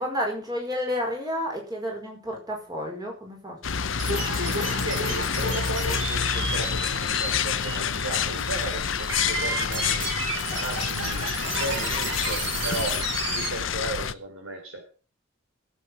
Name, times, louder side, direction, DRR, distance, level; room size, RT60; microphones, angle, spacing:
voice 1, 0.0-3.9, equal, 20° right, 1 dB, 4.9 m, -31 dB
sound 1, 3.6-14.1, left 7 dB, 70° left, 0.8 m, -28 dB
sound 2, 4.0-13.5, right 2 dB, 60° right, 7.8 m, -32 dB
voice 2, 4.2-13.0 13.3-14.8, right 2 dB, 80° right, 2 dB, 4.4 m, -35 dB
16.5 x 8.4 x 5.9 m, 0.37 s
head